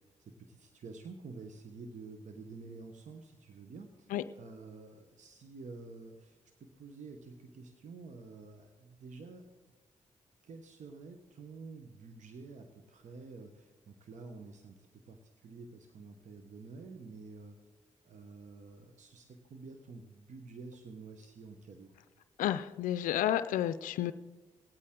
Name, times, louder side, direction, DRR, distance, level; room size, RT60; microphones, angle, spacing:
voice 1, 0.2-9.4 10.4-17.6 18.0-21.9, right 4 dB, 65° right, 6 dB, 1.1 m, -49 dB
voice 2, 22.4-24.1, left 12 dB, 80° left, 13 dB, 0.4 m, -31 dB
19.0 x 8.6 x 3.8 m, 1.2 s
supercardioid pair, 55°, 14 cm